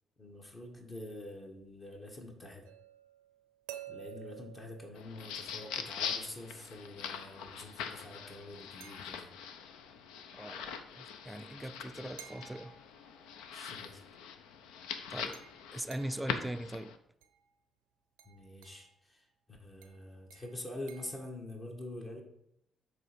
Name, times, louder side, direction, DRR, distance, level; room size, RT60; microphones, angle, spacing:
voice 1, 0.2-2.6 3.9-9.3 13.5-14.0 18.2-22.2, left 1 dB, 40° left, 1.5 m, -46 dB
sound 1, 2.7-5.7 8.8-9.6 12.2-13.4 15.3-16.4 17.2-17.5 18.2-18.9 19.8-21.3, right 11 dB, 90° right, 0.5 m, -53 dB
sound 2, 4.9-17.0, left 7 dB, 80° left, 0.5 m, -42 dB
voice 2, 10.3-12.8 15.1-15.4 15.7-17.0, right 1 dB, 10° right, 0.4 m, -40 dB
7.5 x 3.3 x 5.1 m
hypercardioid pair, 50°, 0 cm